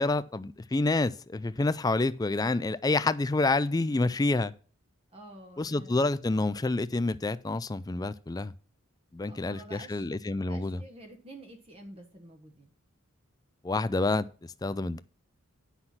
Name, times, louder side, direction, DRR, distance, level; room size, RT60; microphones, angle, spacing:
voice 1, 0.0-4.5 5.6-8.5 9.1-10.8 13.6-14.3 14.6-15.0, left 2 dB, 20° left, 0.3 m, -28 dB
voice 2, 5.1-6.1 6.5-6.6 9.2-10.1 10.5-12.7, right 1 dB, 25° right, 1.2 m, -49 dB
9.8 x 5.7 x 5.8 m
head